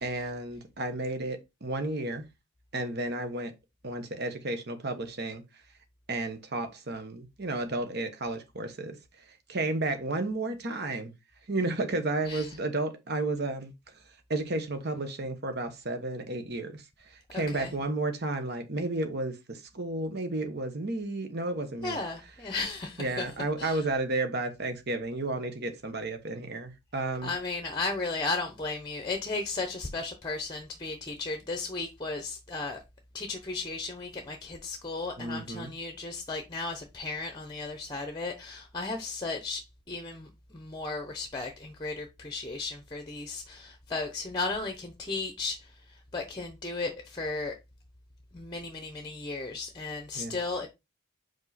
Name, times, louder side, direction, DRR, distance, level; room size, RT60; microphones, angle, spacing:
voice 1, 0.0-2.3 2.7-3.5 3.8-5.4 6.1-9.0 9.3-11.1 11.5-13.7 14.3-22.0 23.0-27.4 35.2-35.7 50.1-50.4, right 2 dB, 45° right, 1.1 m, -32 dB
voice 2, 17.3-17.7 21.8-23.3 23.6-23.8 27.2-32.8 33.1-45.7 46.1-47.5 48.3-50.7, left 3 dB, 20° left, 0.8 m, -35 dB
5.3 x 4.6 x 4.1 m
head